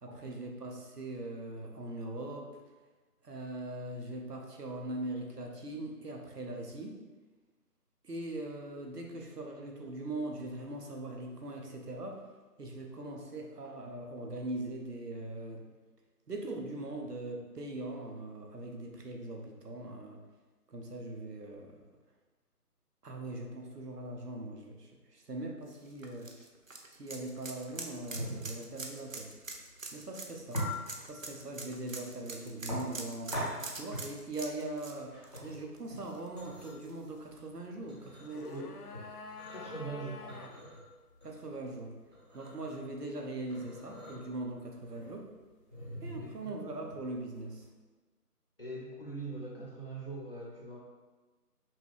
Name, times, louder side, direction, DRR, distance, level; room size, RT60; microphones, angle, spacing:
voice 1, 0.0-2.5 3.2-7.0 8.0-12.2 12.6-15.6 16.3-20.2 20.7-21.7 23.0-26.3 26.9-29.3 29.9-30.6 31.1-33.4 33.7-35.1 35.4-38.8 41.2-42.0 42.3-45.3 46.0-47.6, right 2 dB, 75° right, 1 dB, 1.0 m, -41 dB
sound 1, 25.7-36.4 36.8-36.9 38.4-38.5, right 3 dB, 55° right, 0.5 m, -44 dB
sound 2, 28.1-47.7, equal, 30° right, 1.1 m, -43 dB
sound 3, 38.0-40.6 40.8-40.9, left 5 dB, 70° left, 0.6 m, -48 dB
voice 2, 38.3-38.7 39.5-40.5 46.2-46.5 48.6-50.8, right 2 dB, 35° left, -5 dB, 0.9 m, -42 dB
5.6 x 2.3 x 3.5 m, 1.3 s
figure-of-eight pair, 170°, 47 cm